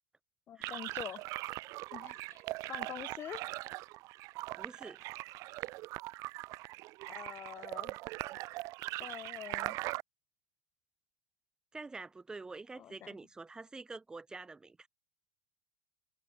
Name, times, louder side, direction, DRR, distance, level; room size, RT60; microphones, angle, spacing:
voice 1, 0.5-1.3 1.9-3.5 7.1-8.0 9.0-9.8 12.7-13.1, left 10 dB, 35° left, 1.6 m, -46 dB
sound 1, 0.6-10.0, right 20 dB, 50° right, 1.1 m, -41 dB
voice 2, 4.6-5.1 11.7-14.9, right 3 dB, 10° right, 0.6 m, -47 dB
supercardioid pair, 120°, 7 cm